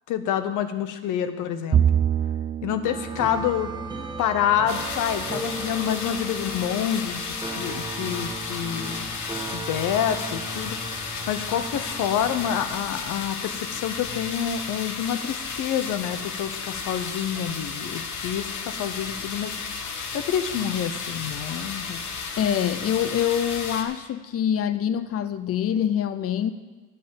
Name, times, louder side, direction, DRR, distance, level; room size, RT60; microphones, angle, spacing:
voice 1, 0.1-1.8 2.6-3.7 4.2-9.1 9.3-19.6 20.1-22.0, left 9 dB, 90° left, 10 dB, 0.9 m, -28 dB
Bowed string instrument, 1.7-5.2, right 9 dB, 30° right, 0.4 m, -26 dB
sound 1, 2.8-12.6, right 2 dB, 15° right, 1.3 m, -36 dB
sound 2, 4.7-23.8, left 5 dB, 70° left, 1.5 m, -33 dB
voice 2, 22.4-26.5, left 9 dB, 50° left, 12 dB, 0.6 m, -25 dB
11.0 x 5.7 x 8.8 m, 1.3 s
cardioid pair, 90°, 30 cm